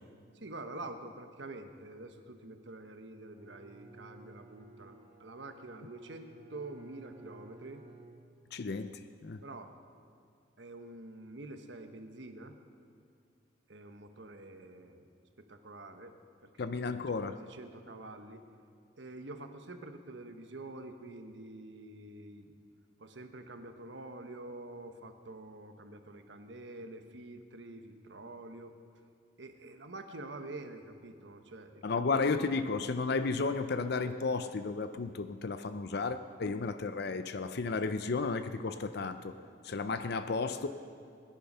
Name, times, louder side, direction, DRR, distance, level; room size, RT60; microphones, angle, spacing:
voice 1, 0.3-4.9 5.2-7.8 9.4-9.7 10.6-12.6 13.7-15.1 15.4-16.9 17.2-18.4 18.9-22.6 23.0-28.7 29.4-32.3, right 2 dB, 80° right, 6 dB, 1.2 m, -47 dB
Bowed string instrument, 3.3-8.8, right 2 dB, 35° right, 1.9 m, -56 dB
voice 2, 8.5-9.4 16.6-17.4 31.8-39.3 39.6-40.7, left 4 dB, 65° left, 10 dB, 0.6 m, -33 dB
22.5 x 10.5 x 5.5 m, 2.3 s
head